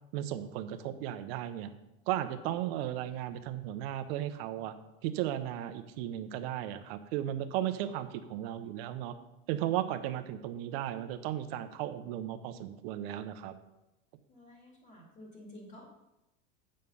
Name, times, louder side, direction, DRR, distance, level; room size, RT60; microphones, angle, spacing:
voice 1, 0.1-1.7 2.1-4.7 5.0-9.1 9.5-13.5, right 12 dB, 60° right, 9 dB, 0.9 m, -35 dB
voice 2, 14.3-15.9, left 1 dB, 20° left, -1 dB, 2.4 m, -51 dB
8.9 x 6.5 x 5.5 m, 0.94 s
cardioid pair, 170°, 34 cm